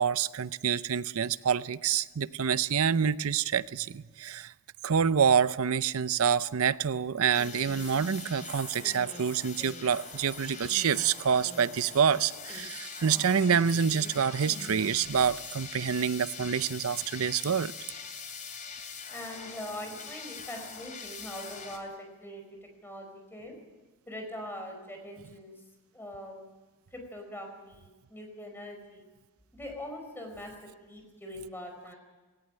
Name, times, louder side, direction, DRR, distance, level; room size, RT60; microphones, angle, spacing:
voice 1, 0.0-4.5 4.8-17.7, right 7 dB, 65° right, 0.6 m, -27 dB
sound 1, 7.3-21.8, left 6 dB, 35° left, 3.0 m, -43 dB
Female speech woman speaking, 7.3-14.1 14.4-15.7, equal, 5° right, 3.6 m, -47 dB
voice 2, 19.1-21.9 22.2-22.4 22.8-23.5 24.1-25.5 25.9-26.4 26.9-29.1 29.5-30.5 30.8-32.0, left 1 dB, 10° left, 5.1 m, -42 dB
18.5 x 18.0 x 8.8 m
head